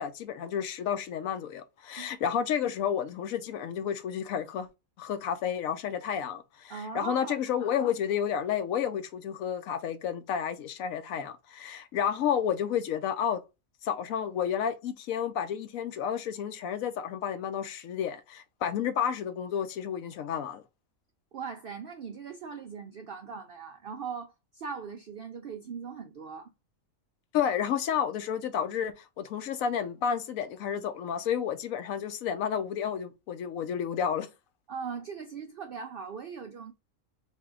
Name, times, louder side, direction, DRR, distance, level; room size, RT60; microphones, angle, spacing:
voice 1, 0.0-4.7 5.0-13.4 13.8-20.6 27.3-34.3, left 8 dB, 75° left, 1.0 m, -31 dB
voice 2, 6.7-7.4 21.3-26.5 34.7-36.7, right 6 dB, 80° right, 0.5 m, -39 dB
3.5 x 2.7 x 3.6 m
omnidirectional pair, 1.5 m